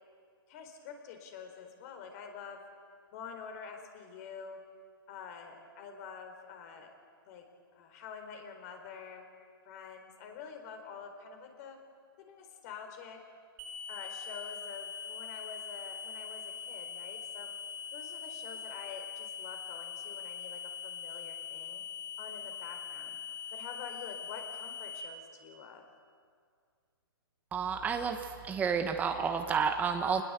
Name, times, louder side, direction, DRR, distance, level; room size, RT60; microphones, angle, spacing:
voice 1, 0.5-2.6 3.1-4.6 5.1-6.9 7.3-7.4 7.7-9.2 9.6-11.8 12.2-13.2 13.9-17.5 17.9-21.8 22.2-23.2 23.5-25.8, left 6 dB, 40° left, 5 dB, 4.2 m, -47 dB
sound 1, 13.6-25.0, left 7 dB, 35° right, 3.2 m, -42 dB
voice 2, 27.5-30.2, right 6 dB, 10° right, 6 dB, 1.1 m, -30 dB
26.5 x 20.0 x 8.1 m, 2.1 s
hypercardioid pair, 145°, 13 cm